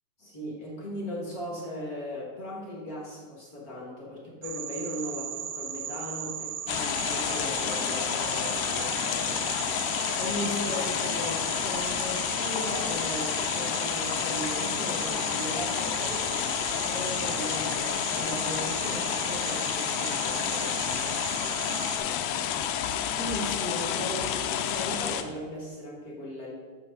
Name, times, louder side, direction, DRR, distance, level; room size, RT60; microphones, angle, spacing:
voice 1, 0.2-9.6 10.0-16.3 16.7-22.6 23.1-26.5, left 1 dB, 45° left, -4 dB, 1.2 m, -37 dB
sound 1, 4.4-22.0, right 9 dB, 80° right, 2.0 m, -37 dB
sound 2, 6.7-25.2, left 9 dB, 85° left, 1.7 m, -30 dB
6.1 x 4.8 x 6.6 m, 1.5 s
omnidirectional pair, 3.9 m